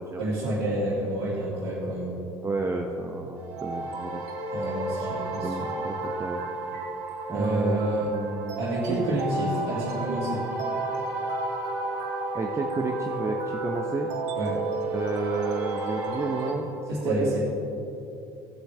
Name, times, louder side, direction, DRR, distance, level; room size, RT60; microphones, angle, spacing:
voice 1, 0.2-2.2 4.5-5.7 7.3-8.1 8.6-10.4 14.4-14.6 16.9-17.4, right 1 dB, 75° right, -9 dB, 2.3 m, -28 dB
voice 2, 2.4-4.2 5.4-6.4 7.3-8.6 8.9-9.5 12.3-14.1 14.9-16.7 17.0-17.4, right 3 dB, 20° right, 2 dB, 0.8 m, -31 dB
sound 1, 3.4-16.5, right 2 dB, 55° right, 1.9 m, -32 dB
15.5 x 8.1 x 3.3 m, 2.8 s
figure-of-eight pair, 65°, 14 cm